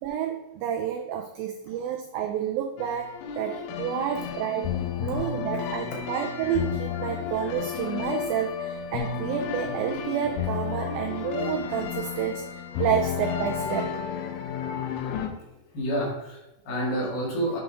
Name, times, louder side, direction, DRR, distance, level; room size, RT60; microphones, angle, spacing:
voice 1, 0.0-4.7 5.0-14.2 16.7-17.0, right 9 dB, 90° right, 3 dB, 2.0 m, -30 dB
sound 1, 2.8-15.3, left 8 dB, 80° left, 2.6 m, -32 dB
voice 2, 15.7-17.6, right 1 dB, 65° left, -2 dB, 3.8 m, -29 dB
8.2 x 5.3 x 3.5 m, 0.97 s
omnidirectional pair, 4.9 m